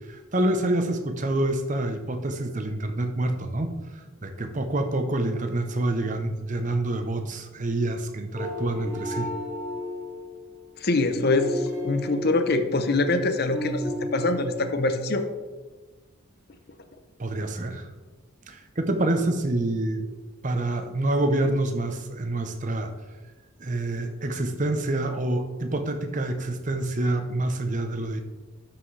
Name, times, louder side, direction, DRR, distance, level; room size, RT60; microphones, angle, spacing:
voice 1, 0.1-3.7 4.2-9.3 17.2-17.9 18.5-20.1 20.4-22.9 23.6-28.2, right 2 dB, 35° right, 7 dB, 0.7 m, -27 dB
sound 1, 8.3-13.2 13.5-14.7, left 1 dB, 10° right, 1.4 m, -33 dB
voice 2, 10.8-15.2, left 2 dB, 50° left, 8 dB, 0.7 m, -24 dB
12.5 x 5.8 x 3.3 m, 1.3 s
head